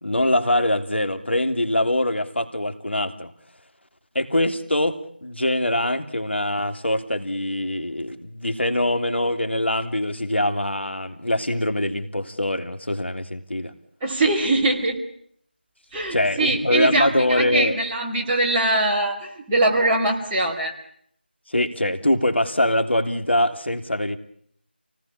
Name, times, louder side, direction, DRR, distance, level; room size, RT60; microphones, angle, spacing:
voice 1, 0.0-3.3 4.1-13.7 16.1-17.7 21.5-24.2, left 1 dB, 80° left, 8 dB, 3.1 m, -23 dB
voice 2, 14.0-15.0 15.9-20.7, right 2 dB, 10° right, -4 dB, 2.4 m, -22 dB
28.0 x 19.0 x 8.7 m, 0.66 s
figure-of-eight pair, 170°, 6 cm